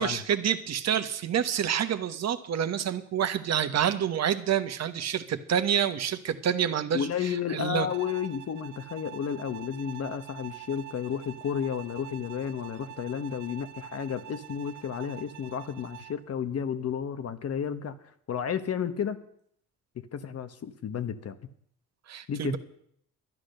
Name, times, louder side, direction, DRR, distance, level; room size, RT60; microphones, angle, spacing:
voice 1, 0.0-7.9 22.1-22.6, right 9 dB, 60° right, 9 dB, 1.2 m, -28 dB
voice 2, 6.9-17.9 18.3-19.2 19.9-21.4 22.3-22.5, left 8 dB, 55° left, 11 dB, 1.1 m, -32 dB
Bowed string instrument, 7.9-16.3, right 12 dB, 80° right, 0.8 m, -46 dB
12.5 x 10.0 x 6.6 m, 0.67 s
cardioid pair, 90°, 30 cm